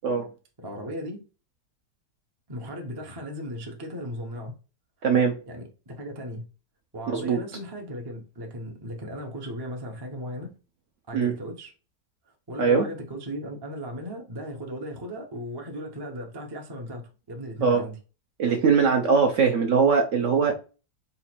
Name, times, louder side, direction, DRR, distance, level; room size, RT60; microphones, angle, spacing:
voice 1, 0.6-1.2 2.5-4.5 5.5-6.4 6.9-10.5 11.1-11.7 12.3-18.0, equal, 25° right, 0.5 m, -36 dB
voice 2, 5.0-5.4 7.1-7.4 11.1-11.3 12.6-12.9 17.6-17.8 18.4-20.5, right 5 dB, 60° right, 0.8 m, -21 dB
3.9 x 2.5 x 4.3 m
omnidirectional pair, 1.7 m